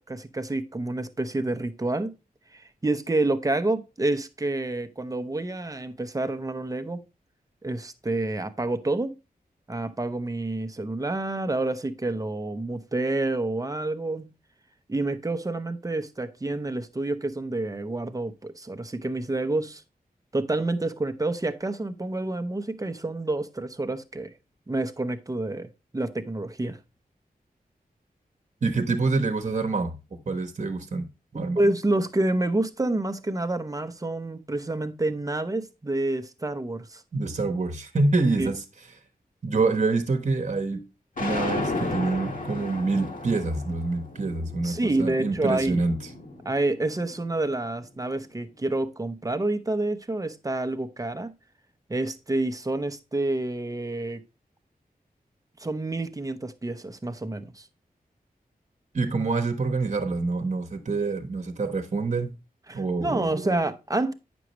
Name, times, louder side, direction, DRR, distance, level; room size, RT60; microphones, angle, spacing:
voice 1, 0.1-2.1 2.5-7.0 7.6-9.1 9.7-14.3 14.9-19.8 20.3-24.3 24.7-26.8 31.3-37.0 38.4-38.5 44.6-45.8 46.4-51.3 51.9-54.2 55.6-57.7 62.7-64.1, right 2 dB, 20° right, 0.8 m, -28 dB
voice 2, 28.6-30.0 30.3-31.1 31.3-31.6 37.1-38.6 39.4-40.8 41.2-45.9 58.9-62.3 62.7-63.6, right 3 dB, 50° right, 1.1 m, -26 dB
sound 1, 41.2-47.3, left 2 dB, 60° left, 1.7 m, -34 dB
9.0 x 6.1 x 3.0 m
wide cardioid pair, 90°, 16 cm